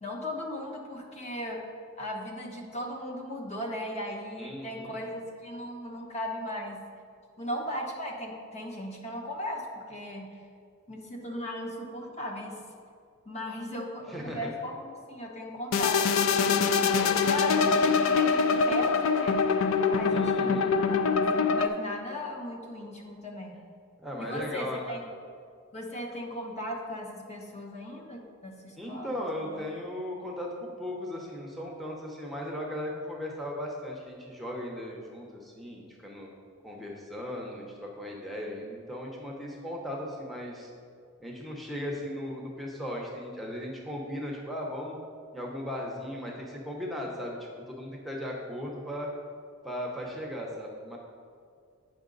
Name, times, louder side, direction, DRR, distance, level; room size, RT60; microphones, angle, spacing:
voice 1, 0.0-1.6 2.0-6.8 7.4-10.3 10.9-12.6 13.3-16.5 17.0-19.4 19.9-23.6 24.2-25.0 25.7-29.2 29.4-29.6, left 1 dB, 30° left, 0 dB, 0.9 m, -37 dB
voice 2, 4.4-5.0 14.1-14.5 16.4-16.7 20.0-20.7 24.0-25.0 28.8-36.3 36.6-40.7 41.2-45.0 45.3-47.4 47.7-49.1 49.6-51.0, left 1 dB, ahead, -2 dB, 0.8 m, -37 dB
sound 1, 15.7-21.7, left 5 dB, 70° left, 0.4 m, -24 dB
8.6 x 5.6 x 3.9 m, 2.2 s
head